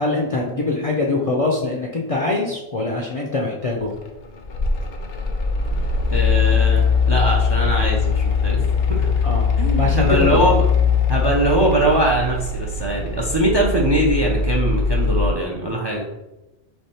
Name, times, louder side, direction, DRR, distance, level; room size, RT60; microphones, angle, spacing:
voice 1, 0.0-3.9 9.2-10.5, left 2 dB, 45° left, -1 dB, 0.5 m, -23 dB
Mechanical fan, 4.0-15.3, left 5 dB, 65° left, 0.8 m, -20 dB
voice 2, 6.1-9.2 9.6-10.6 11.1-16.1, right 1 dB, 35° right, 0 dB, 0.4 m, -21 dB
3.4 x 3.4 x 4.2 m, 0.98 s
omnidirectional pair, 1.1 m